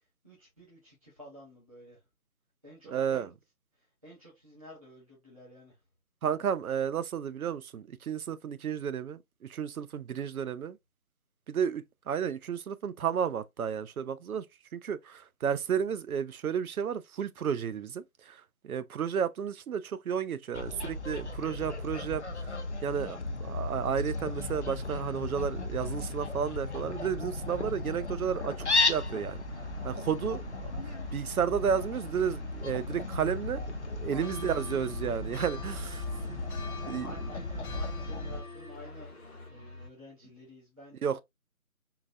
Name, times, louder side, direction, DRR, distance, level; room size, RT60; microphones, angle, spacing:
voice 1, 0.0-2.0 2.6-3.3 3.7-5.8 34.1-34.7 35.2-41.2, equal, 25° right, 0.9 m, -52 dB
voice 2, 2.9-3.3 6.2-10.8 11.5-14.5 14.7-22.6 22.8-29.4 29.8-30.4 30.9-33.6 33.9-36.0 36.3-36.4 36.9-37.1 41.0-41.2, right 8 dB, 75° right, 0.5 m, -32 dB
Fowl, 20.5-38.4, left 2 dB, 55° left, 0.5 m, -35 dB
sound 1, 29.2-39.9, left 2 dB, 45° right, 1.1 m, -49 dB
sound 2, 34.2-39.5, left 4 dB, 80° left, 0.8 m, -47 dB
3.8 x 2.2 x 2.5 m
figure-of-eight pair, 175°, 43 cm